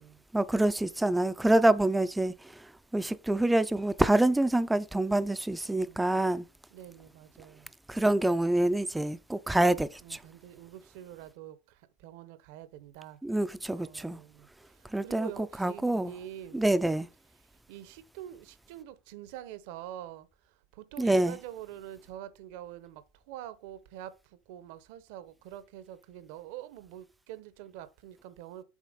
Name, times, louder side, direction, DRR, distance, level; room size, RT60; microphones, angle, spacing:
voice 1, 0.3-2.3 2.9-6.5 7.9-10.2 13.2-14.2 14.9-15.3 15.6-16.1 16.5-17.1 21.0-21.4, right 1 dB, 5° right, 0.4 m, -26 dB
voice 2, 5.6-6.4 6.7-7.7 10.0-13.2 13.7-14.5 14.7-16.7 17.7-28.6, right 12 dB, 65° right, 0.8 m, -46 dB
7.4 x 3.4 x 5.0 m
supercardioid pair, 135°, 0 cm